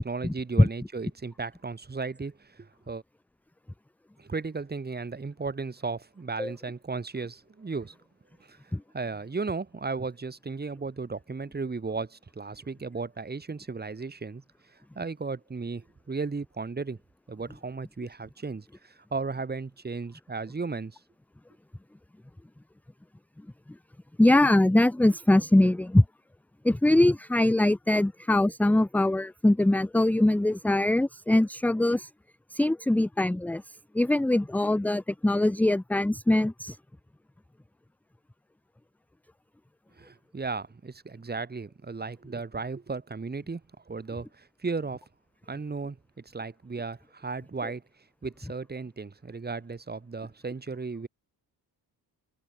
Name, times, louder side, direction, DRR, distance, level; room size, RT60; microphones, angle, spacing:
voice 1, 0.0-3.0 4.2-7.9 8.5-14.4 14.9-17.0 17.3-21.0 40.0-43.6 43.9-45.0 45.5-47.8 48.2-51.1, right 4 dB, 25° right, 5.0 m, -35 dB
voice 2, 24.2-26.0 26.6-32.1 32.5-33.6 33.9-36.8, left 1 dB, 5° left, 0.6 m, -22 dB
wide cardioid pair, 155°, 39 cm